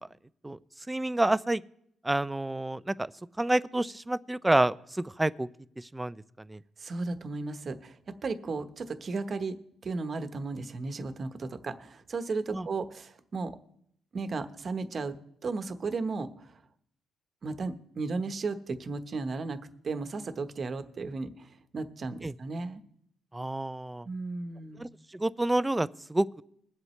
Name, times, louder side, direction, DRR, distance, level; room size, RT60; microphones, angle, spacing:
voice 1, 0.9-1.6 2.0-3.1 3.4-5.5 5.8-6.2 6.5-6.6 12.5-12.6 22.2-22.3 23.3-24.1 24.8-26.4, right 1 dB, 10° right, 16 dB, 0.4 m, -28 dB
voice 2, 6.8-9.6 9.8-13.6 14.1-15.2 15.4-16.6 17.4-19.6 19.8-22.8 24.0-24.9, right 3 dB, 45° right, 9 dB, 1.1 m, -35 dB
21.5 x 7.9 x 3.2 m, 0.71 s
cardioid pair, 90°, 0 cm